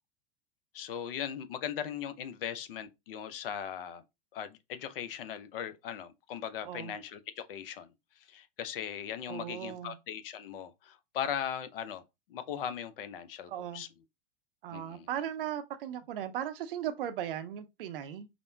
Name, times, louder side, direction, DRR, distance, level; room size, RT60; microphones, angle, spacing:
voice 1, 0.7-4.0 4.3-7.9 8.3-12.0 12.3-13.9 14.7-15.1, left 9 dB, 60° left, 0.6 m, -39 dB
voice 2, 6.6-6.9 9.3-10.0 13.5-13.8 14.6-18.3, right 10 dB, 55° right, 0.6 m, -37 dB
4.9 x 2.0 x 2.2 m
figure-of-eight pair, 90°, 32 cm